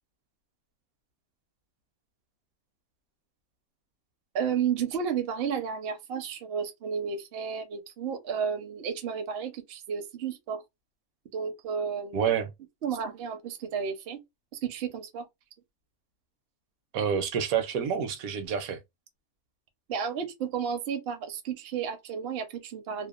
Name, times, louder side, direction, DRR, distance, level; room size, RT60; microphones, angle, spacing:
voice 1, 4.3-10.6 11.3-12.3 12.8-14.2 14.6-15.3 19.9-23.1, right 7 dB, 60° right, 0.7 m, -32 dB
voice 2, 12.1-12.5 16.9-18.8, right 7 dB, 75° right, 1.0 m, -28 dB
2.7 x 2.1 x 2.3 m
omnidirectional pair, 1.5 m